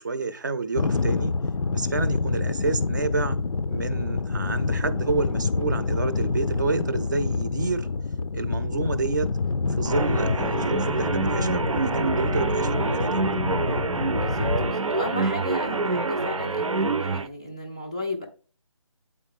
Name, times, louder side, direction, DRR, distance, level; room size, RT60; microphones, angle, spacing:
voice 1, 0.0-1.3 1.7-3.4 3.7-7.9 8.3-9.3 9.7-13.2, right 4 dB, 35° right, 0.6 m, -29 dB
sound 1, 0.7-14.7, left 4 dB, 80° left, 0.5 m, -27 dB
sound 2, 9.8-17.3, right 3 dB, 80° right, 0.7 m, -26 dB
voice 2, 14.1-18.3, left 2 dB, 10° left, 0.4 m, -34 dB
8.5 x 4.1 x 3.5 m
figure-of-eight pair, 160°, 17 cm